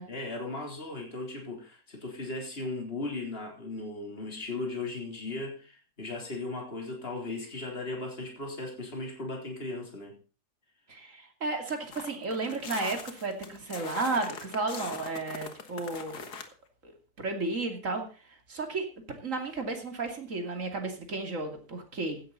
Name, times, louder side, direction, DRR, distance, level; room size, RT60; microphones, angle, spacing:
voice 1, 0.1-10.2, left 2 dB, 40° left, 0 dB, 3.9 m, -37 dB
voice 2, 10.9-16.3 16.8-22.2, right 3 dB, 55° right, 4 dB, 3.0 m, -33 dB
sound 1, 11.9-16.5, left 6 dB, 90° left, 2.1 m, -41 dB
16.0 x 11.5 x 4.1 m, 0.35 s
omnidirectional pair, 1.7 m